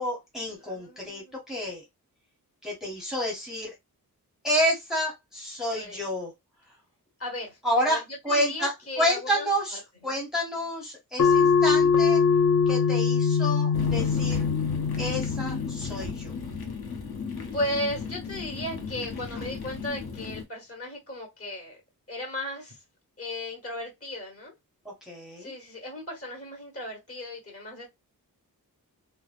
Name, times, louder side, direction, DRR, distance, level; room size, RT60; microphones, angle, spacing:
voice 1, 0.0-1.8 2.6-3.7 4.4-6.3 7.6-12.2 12.7-14.5 15.0-16.3 25.1-25.5, equal, ahead, 0.7 m, -29 dB
voice 2, 0.6-1.4 5.7-6.0 7.2-7.6 7.8-9.5 10.0-10.2 17.5-21.8 22.1-22.8 23.2-24.5 25.4-27.9, left 1 dB, 40° left, 1.4 m, -35 dB
sound 1, 11.2-16.3, left 5 dB, 55° left, 0.6 m, -23 dB
sound 2, 13.7-20.4, left 5 dB, 80° left, 0.8 m, -35 dB
3.0 x 2.2 x 2.4 m
wide cardioid pair, 125°, 37 cm